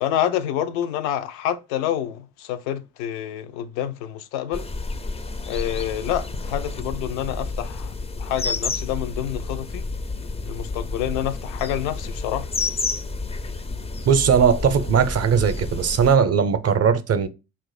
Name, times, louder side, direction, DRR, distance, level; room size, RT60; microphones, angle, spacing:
voice 1, 0.0-4.7 5.5-7.9 8.2-9.8 10.5-12.5, left 11 dB, 70° left, 0.5 m, -27 dB
sound 1, 4.5-16.2, left 3 dB, 15° left, 0.4 m, -30 dB
voice 2, 14.1-17.3, right 6 dB, 40° right, 0.6 m, -19 dB
3.6 x 2.5 x 3.9 m
figure-of-eight pair, 40°, 40 cm